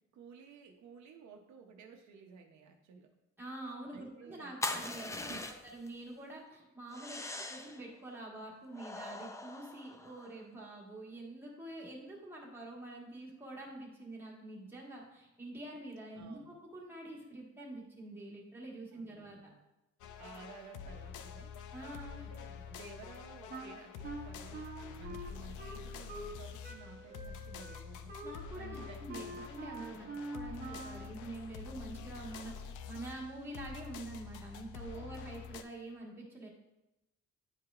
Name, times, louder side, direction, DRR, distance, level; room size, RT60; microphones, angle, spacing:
voice 1, 0.1-3.1 3.9-5.5 7.2-7.5 16.2-16.5 18.9-19.6 20.2-21.6 22.2-24.7 25.0-28.3 28.6-29.4 30.0-30.2 34.9-35.3, right 5 dB, 75° right, 3 dB, 0.8 m, -54 dB
voice 2, 3.4-5.3 5.7-7.2 7.5-19.4 21.7-22.2 28.2-32.5 32.9-36.5, right 2 dB, 5° right, -5 dB, 1.5 m, -46 dB
sound 1, 4.6-5.9 6.9-7.8 8.7-10.4, left 2 dB, 10° left, 0.3 m, -41 dB
sound 2, 20.0-35.6, left 7 dB, 90° left, 0.5 m, -47 dB
Wind instrument woodwind instrument, 23.5-26.4 26.6-31.1, right 2 dB, 30° right, 0.8 m, -46 dB
9.7 x 4.7 x 2.4 m, 0.94 s
cardioid pair, 140°, 29 cm